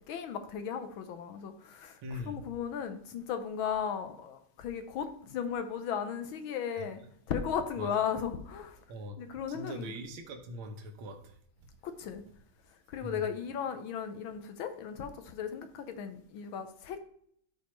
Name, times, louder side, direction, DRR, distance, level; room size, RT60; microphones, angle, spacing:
voice 1, 0.1-2.0 2.3-7.0 7.3-8.8 9.2-9.9 11.8-12.2 12.9-17.0, left 7 dB, 75° left, 1.6 m, -36 dB
voice 2, 2.0-2.5 6.8-6.9 7.8-7.9 8.9-9.2 9.5-11.3 13.0-13.3, equal, 80° right, 1.8 m, -41 dB
13.0 x 4.6 x 3.1 m
omnidirectional pair, 2.2 m